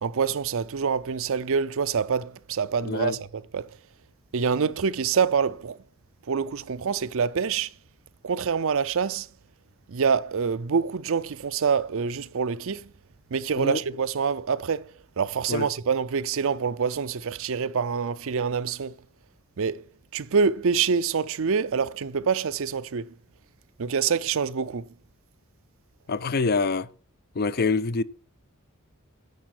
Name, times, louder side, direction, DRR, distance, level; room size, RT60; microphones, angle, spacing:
voice 1, 0.0-3.8 4.3-5.8 6.3-7.7 8.2-9.3 9.9-12.9 13.3-14.9 15.2-18.9 19.6-19.8 20.1-23.1 23.8-24.8, right 6 dB, 65° right, 0.6 m, -26 dB
voice 2, 2.8-3.2 13.6-13.8 15.5-15.7 26.1-26.9 27.4-28.0, left 4 dB, 45° left, 0.5 m, -25 dB
10.5 x 7.5 x 6.0 m
head